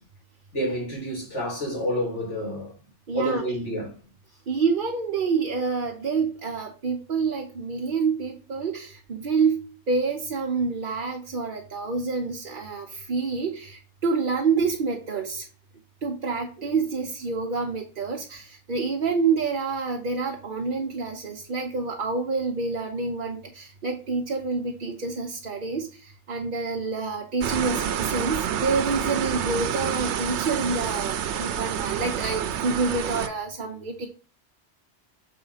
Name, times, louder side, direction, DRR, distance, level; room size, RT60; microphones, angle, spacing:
voice 1, 0.5-2.7 3.1-3.9, equal, 85° left, 3.5 m, -29 dB
voice 2, 3.1-3.4 4.5-15.4 16.0-34.1, right 4 dB, 50° right, 1.0 m, -27 dB
sound 1, 27.4-33.3, right 9 dB, 75° right, 1.0 m, -28 dB
6.8 x 3.8 x 5.6 m
omnidirectional pair, 1.2 m